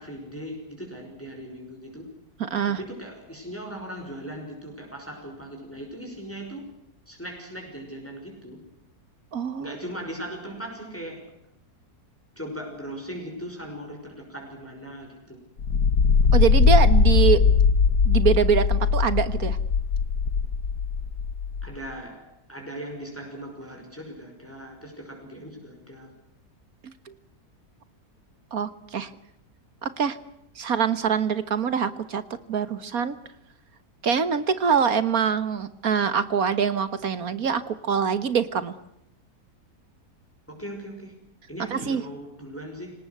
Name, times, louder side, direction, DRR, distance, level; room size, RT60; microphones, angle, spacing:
voice 1, 0.0-2.1 2.6-6.7 7.1-8.6 9.6-11.3 12.4-15.4 21.6-26.1 29.0-29.1 40.5-41.1 41.5-42.9, equal, 10° left, 1 dB, 5.8 m, -39 dB
voice 2, 2.4-2.8 9.3-9.8 16.3-17.4 18.1-19.6 26.8-26.9 28.5-29.1 29.8-30.2 30.6-32.2 32.5-33.2 34.0-38.8 41.7-42.0, right 7 dB, 60° right, 14 dB, 1.7 m, -24 dB
sound 1, 15.6-21.7, left 5 dB, 70° left, 1.8 m, -20 dB
26.5 x 19.0 x 8.0 m, 0.75 s
omnidirectional pair, 1.7 m